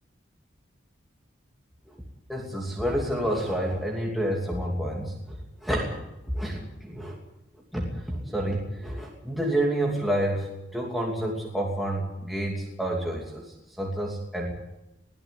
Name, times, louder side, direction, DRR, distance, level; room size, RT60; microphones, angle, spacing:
voice 1, 2.3-6.0 6.3-7.2 7.5-14.5, right 1 dB, ahead, -3 dB, 2.8 m, -29 dB
21.5 x 14.0 x 9.9 m, 0.94 s
head